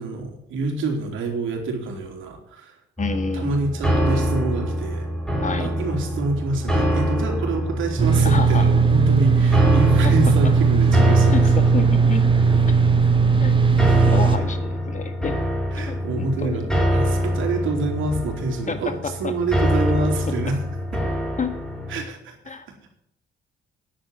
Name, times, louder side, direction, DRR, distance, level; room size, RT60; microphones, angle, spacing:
voice 1, 0.0-2.7 3.3-5.1 5.6-11.4 15.7-20.6 20.9-21.0 21.9-22.4, right 2 dB, 80° right, 3 dB, 3.4 m, -26 dB
voice 2, 3.0-3.7 5.4-5.7 8.2-8.7 10.0-10.1 11.3-12.2 13.4-13.6 14.1-15.4 15.8-16.6 18.7-18.8 19.2-19.3 20.3-20.4 21.4-21.6 22.5-22.7, left 5 dB, 40° left, 9 dB, 1.9 m, -29 dB
sound 1, 3.0-22.0, equal, 5° left, 5.4 m, -25 dB
sound 2, 8.0-14.4, right 5 dB, 25° right, 1.7 m, -17 dB
10.0 x 8.1 x 7.4 m, 0.74 s
cardioid pair, 90°, 20 cm